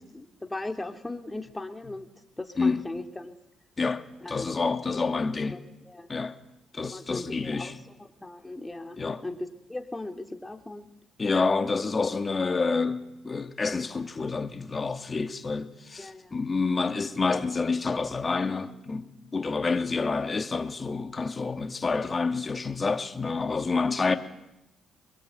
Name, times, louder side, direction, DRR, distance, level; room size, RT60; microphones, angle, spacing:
voice 1, 0.1-2.1 2.4-3.3 4.2-4.6 4.9-5.6 5.8-6.1 6.9-7.7 8.0-9.4 9.7-10.9 16.0-16.4 20.0-20.1 23.9-24.0, left 2 dB, 15° left, 3.1 m, -38 dB
voice 2, 2.6-2.9 3.8-5.6 6.1-6.4 6.7-7.8 9.0-9.2 11.2-24.2, left 4 dB, 30° left, 2.3 m, -28 dB
25.5 x 22.0 x 9.4 m
cardioid pair, 90°, 0 cm